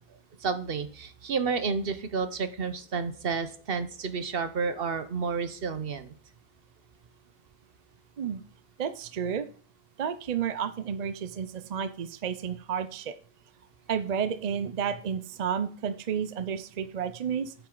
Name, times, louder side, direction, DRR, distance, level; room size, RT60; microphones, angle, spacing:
voice 1, 0.4-6.1, right 5 dB, 65° right, 11 dB, 1.1 m, -30 dB
voice 2, 8.8-9.5 10.0-13.1 13.9-17.5, right 7 dB, 50° right, 12 dB, 0.6 m, -31 dB
8.7 x 7.5 x 3.8 m, 0.43 s
omnidirectional pair, 1.0 m